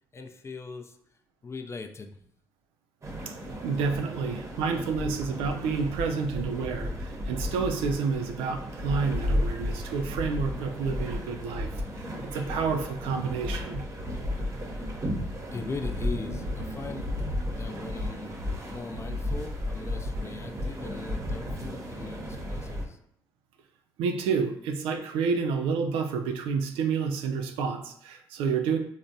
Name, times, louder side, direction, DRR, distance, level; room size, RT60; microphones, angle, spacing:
voice 1, 0.1-1.0 1.4-2.2 4.9-5.0 15.5-17.1 17.6-18.4 18.6-23.0, left 4 dB, 30° left, 5 dB, 0.4 m, -40 dB
sound 1, 3.0-22.9, left 1 dB, 30° right, 0.7 m, -33 dB
voice 2, 3.6-13.9 24.0-28.8, right 5 dB, 80° right, 6 dB, 0.4 m, -29 dB
3.3 x 2.1 x 2.6 m, 0.70 s
hypercardioid pair, 55°, 9 cm